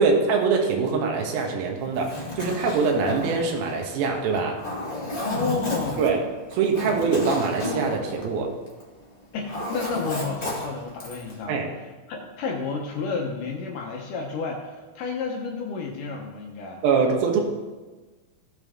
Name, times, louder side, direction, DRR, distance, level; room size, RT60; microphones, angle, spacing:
voice 1, 0.0-4.6 6.0-6.2 6.5-8.5 11.5-11.7 16.8-17.4, right 5 dB, 75° right, 1 dB, 3.0 m, -23 dB
Zipper (clothing), 1.8-8.9 9.2-11.4, left 2 dB, 30° left, 0.9 m, -33 dB
voice 2, 5.2-6.2 9.3-11.6 12.1-16.8, left 4 dB, 70° left, 0 dB, 2.2 m, -31 dB
16.5 x 5.7 x 3.6 m, 1.3 s
omnidirectional pair, 4.6 m